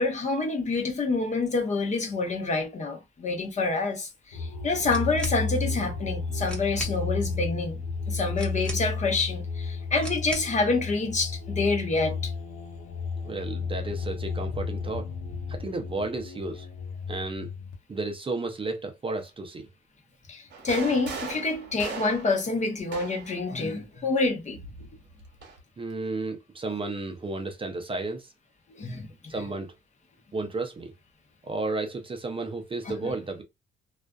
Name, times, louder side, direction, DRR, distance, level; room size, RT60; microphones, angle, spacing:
voice 1, 0.0-7.8 8.1-12.3 20.3-24.6 28.8-29.1 33.0-33.1, left 3 dB, 35° left, 0.8 m, -27 dB
sound 1, 4.3-17.7, left 4 dB, 90° left, 0.8 m, -33 dB
sound 2, 4.8-5.4 6.1-6.2 6.4-7.0 8.4-9.1 10.0-10.6, equal, 5° left, 0.8 m, -39 dB
voice 2, 13.2-15.1 15.5-16.7 17.1-17.5 17.9-19.7 25.8-28.3 29.3-29.7 30.3-30.9 31.4-33.4, right 3 dB, 25° right, 0.5 m, -33 dB
sound 3, 20.5-23.4 24.5-25.6, right 4 dB, 60° right, 0.8 m, -39 dB
2.4 x 2.3 x 2.2 m
cardioid pair, 90°, 20 cm